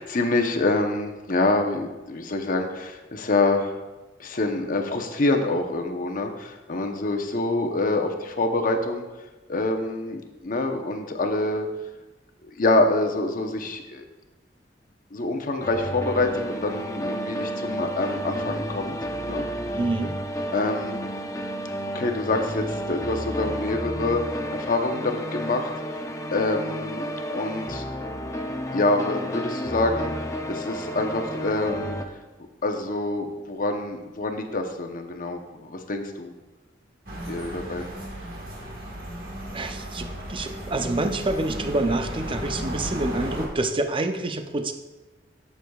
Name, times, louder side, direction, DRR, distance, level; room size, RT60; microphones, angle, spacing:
voice 1, 0.0-3.8 4.2-9.0 9.5-11.7 12.6-14.0 15.1-19.0 19.3-19.4 20.5-21.1 21.9-26.0 26.3-27.0 27.3-27.8 28.7-32.0 32.6-36.3 37.3-37.9, left 2 dB, 45° left, 5 dB, 0.8 m, -26 dB
sound 1, 15.6-32.0, equal, 15° left, 0.6 m, -31 dB
voice 2, 19.8-20.2 39.5-44.7, right 2 dB, 30° right, 7 dB, 0.6 m, -27 dB
sound 2, 37.1-43.5, equal, 55° right, 1.6 m, -34 dB
12.5 x 6.9 x 2.3 m, 1.1 s
head